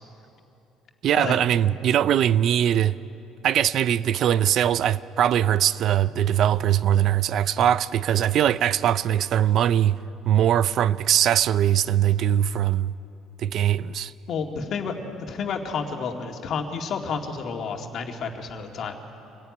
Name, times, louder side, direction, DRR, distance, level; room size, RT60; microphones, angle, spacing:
voice 1, 1.0-3.0 3.4-10.0 10.3-12.9 13.4-14.1, right 10 dB, 55° right, 0.5 m, -21 dB
voice 2, 14.3-19.0, left 5 dB, 50° left, 2.3 m, -30 dB
25.0 x 15.5 x 9.7 m
cardioid pair, 125°, 0 cm